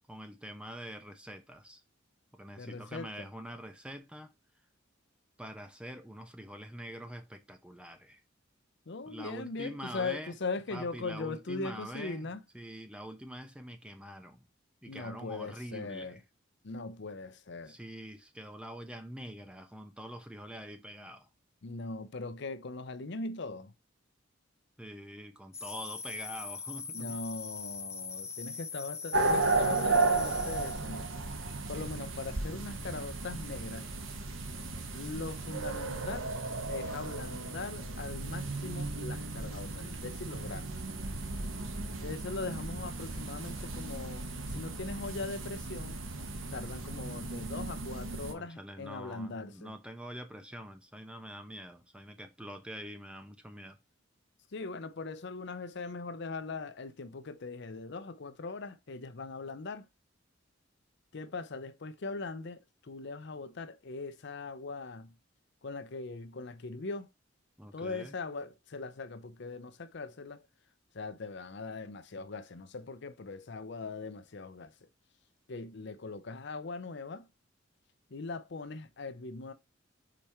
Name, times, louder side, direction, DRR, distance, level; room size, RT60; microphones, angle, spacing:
voice 1, 0.1-1.8 2.3-4.3 5.4-8.2 9.1-10.3 10.7-12.3 12.5-14.5 14.8-16.2 17.6-21.3 24.8-27.2 48.3-53.8 67.6-68.1, equal, 5° right, 0.9 m, -45 dB
voice 2, 2.6-3.3 8.9-12.4 14.9-16.2 16.6-17.8 21.6-23.7 26.9-31.1 31.7-33.9 34.9-36.3 36.7-40.8 42.0-46.0 46.5-49.7 54.5-59.9 61.1-65.1 65.6-67.1 67.7-70.4 70.9-74.9 75.5-77.3 78.1-79.5, left 3 dB, 60° left, 0.6 m, -40 dB
sound 1, 25.5-30.8, left 5 dB, 15° left, 0.5 m, -41 dB
sound 2, 29.1-48.3, right 3 dB, 90° right, 1.2 m, -34 dB
5.3 x 4.3 x 4.3 m
head